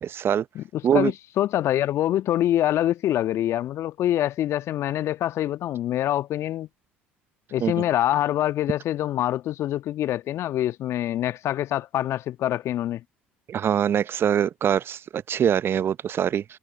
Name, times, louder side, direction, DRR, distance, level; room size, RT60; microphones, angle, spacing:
voice 1, 0.0-0.4 0.8-1.1 7.6-7.7 13.5-16.4, right 9 dB, 45° right, 0.7 m, -23 dB
voice 2, 0.5-6.7 7.5-13.0, left 12 dB, 55° left, 1.4 m, -25 dB
figure-of-eight pair, 55°, 6 cm